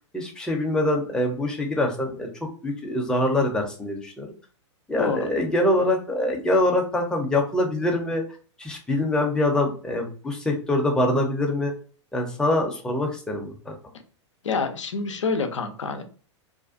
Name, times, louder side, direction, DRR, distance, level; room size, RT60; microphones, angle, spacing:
voice 1, 0.1-2.3 2.6-4.3 4.9-8.2 8.6-11.7 12.1-13.7, left 1 dB, 5° left, 0 dB, 0.6 m, -24 dB
voice 2, 14.4-16.0, left 4 dB, 80° left, 7 dB, 0.5 m, -27 dB
2.5 x 2.2 x 2.5 m, 0.39 s
figure-of-eight pair, 105°, 16 cm